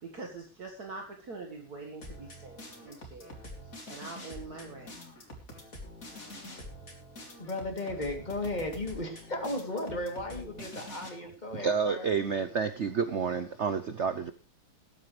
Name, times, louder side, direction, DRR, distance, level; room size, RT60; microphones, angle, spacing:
voice 1, 0.0-3.3 3.9-5.0, right 3 dB, 50° right, 1 dB, 2.2 m, -44 dB
sound 1, 2.0-11.1, left 1 dB, 40° left, 3.7 m, -46 dB
voice 2, 7.4-12.1, left 2 dB, 20° left, 3 dB, 3.0 m, -35 dB
voice 3, 11.5-14.3, right 6 dB, 85° right, 11 dB, 0.6 m, -29 dB
20.0 x 9.8 x 3.3 m, 0.34 s
omnidirectional pair, 2.3 m